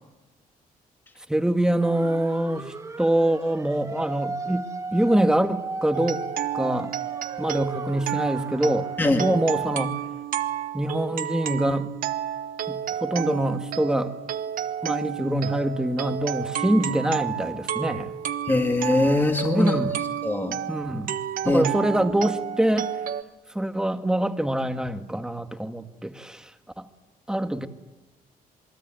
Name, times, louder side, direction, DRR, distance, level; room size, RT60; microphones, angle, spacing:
voice 1, 1.3-6.2 6.5-6.9 7.4-10.0 10.7-11.9 12.7-14.1 14.8-18.1 19.5-20.0 20.7-21.1 21.4-22.9 23.5-26.5 26.8-26.9 27.3-27.7, right 1 dB, 5° right, 1.6 m, -25 dB
sound 1, 1.8-9.0, right 3 dB, 20° right, 2.2 m, -36 dB
sound 2, 5.9-23.2, right 10 dB, 70° right, 1.2 m, -31 dB
voice 2, 18.5-19.8 20.2-20.6 21.4-21.7, left 2 dB, 15° left, 2.1 m, -21 dB
27.0 x 22.0 x 9.0 m
cardioid pair, 140°, 15 cm